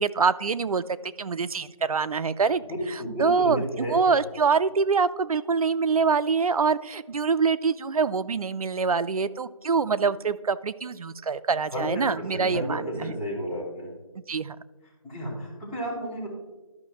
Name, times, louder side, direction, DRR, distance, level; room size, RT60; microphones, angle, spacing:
voice 1, 0.0-2.6 3.2-13.1 14.3-14.6, right 5 dB, 85° right, 14 dB, 0.4 m, -25 dB
voice 2, 3.0-4.0 11.7-13.9 15.0-16.3, equal, 10° left, -8 dB, 1.7 m, -32 dB
12.5 x 5.5 x 3.0 m, 1.2 s
figure-of-eight pair, 170°, 18 cm